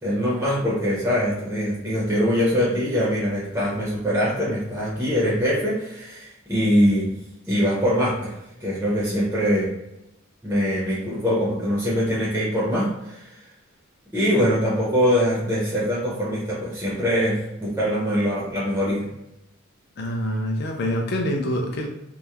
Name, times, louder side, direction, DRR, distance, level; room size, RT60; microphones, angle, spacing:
voice 1, 0.0-7.1 7.5-8.3 8.6-9.7 10.4-13.4 14.1-19.1, equal, 10° right, -7 dB, 0.5 m, -23 dB
voice 2, 20.0-21.9, equal, 50° left, 1 dB, 0.4 m, -25 dB
2.8 x 2.0 x 2.2 m, 0.89 s
head